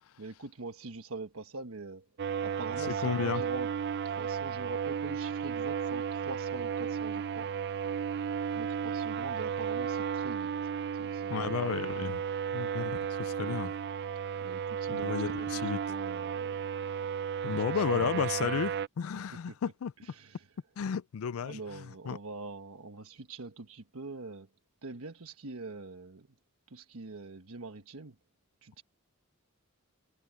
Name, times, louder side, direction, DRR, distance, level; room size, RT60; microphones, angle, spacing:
voice 1, 0.2-2.1 2.4-3.7 4.0-7.5 8.1-11.9 13.0-13.1 14.4-16.6 17.5-18.6 19.5-19.7 20.0-20.5 21.4-24.5 24.8-26.3 26.7-28.2 28.6-28.8, right 3 dB, 75° right, 1.3 m, -44 dB
sound 1, 2.2-18.9, right 7 dB, 55° right, 0.4 m, -34 dB
voice 2, 3.0-3.4 11.3-12.2 12.5-13.7 14.9-15.8 17.4-19.9 20.8-22.2, left 7 dB, 75° left, 0.4 m, -33 dB
head